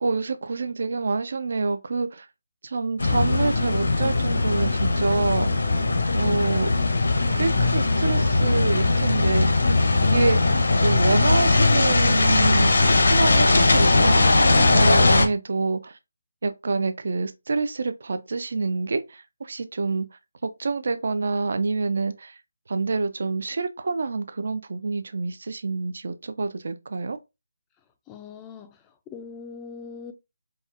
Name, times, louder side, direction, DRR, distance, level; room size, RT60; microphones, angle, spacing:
voice 1, 0.0-2.3 2.6-5.5 6.1-6.7 7.4-9.7 10.0-16.0 16.4-20.1 20.4-22.3 22.7-27.2, right 3 dB, 60° right, 0.4 m, -27 dB
sound 1, 3.0-15.3, left 3 dB, 70° left, 0.7 m, -20 dB
voice 2, 28.1-28.7 29.1-30.1, left 5 dB, 15° left, 0.3 m, -40 dB
4.1 x 2.1 x 2.4 m
figure-of-eight pair, 160°, 0 cm